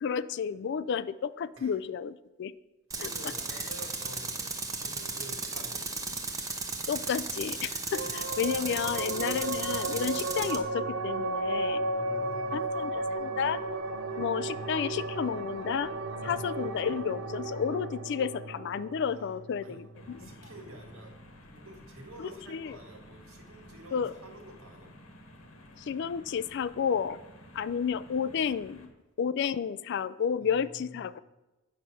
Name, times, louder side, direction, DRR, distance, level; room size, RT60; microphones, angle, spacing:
voice 1, 0.0-2.5 3.0-3.3 6.9-11.8 12.5-13.6 14.2-15.9 16.2-20.3 22.2-22.8 23.9-24.2 25.8-27.2 27.5-28.9 29.2-31.2, left 7 dB, 55° left, 17 dB, 0.3 m, -32 dB
Tools, 2.9-10.6, right 4 dB, 15° right, 0.8 m, -35 dB
voice 2, 3.0-4.4 4.8-5.9 7.9-8.1 8.7-8.9 11.8-12.8 16.2-16.8 19.1-19.3 19.6-19.8 20.2-21.1 21.4-24.9 30.8-31.1, right 1 dB, 85° right, 2 dB, 1.9 m, -49 dB
sound 1, 7.9-20.8, right 2 dB, 65° right, 0.8 m, -34 dB
sound 2, 19.9-28.9, left 1 dB, 85° left, 1.4 m, -52 dB
8.9 x 5.6 x 6.3 m, 1.1 s
head